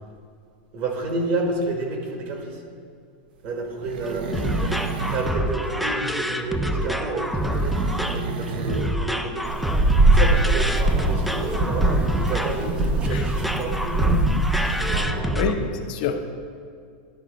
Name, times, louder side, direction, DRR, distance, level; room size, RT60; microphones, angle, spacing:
voice 1, 0.7-2.6 3.4-4.7 5.1-9.5 10.0-14.0 14.8-15.4, right 2 dB, 45° right, 2 dB, 1.5 m, -30 dB
sound 1, 3.4-5.4 7.3-9.0 9.3-9.4, right 4 dB, 75° right, 0.7 m, -31 dB
sound 2, 4.0-15.5, equal, ahead, 0.3 m, -26 dB
sound 3, 9.4-15.0, right 2 dB, 25° right, 0.8 m, -22 dB
voice 2, 15.3-16.3, left 6 dB, 55° left, 6 dB, 0.7 m, -27 dB
11.5 x 3.8 x 5.1 m, 2.2 s
supercardioid pair, 145°, 5 cm